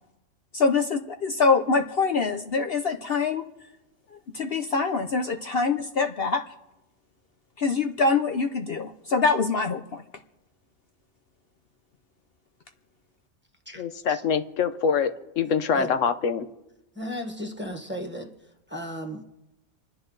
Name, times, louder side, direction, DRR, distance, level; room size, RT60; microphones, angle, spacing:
voice 1, 0.5-3.5 4.3-6.4 7.6-10.0, left 4 dB, 55° left, 5 dB, 0.9 m, -24 dB
voice 2, 13.8-16.5, left 6 dB, 80° left, 10 dB, 1.2 m, -25 dB
voice 3, 16.9-18.3 18.7-19.3, equal, 10° right, 3 dB, 1.4 m, -35 dB
27.5 x 10.0 x 3.9 m, 0.91 s
omnidirectional pair, 1.3 m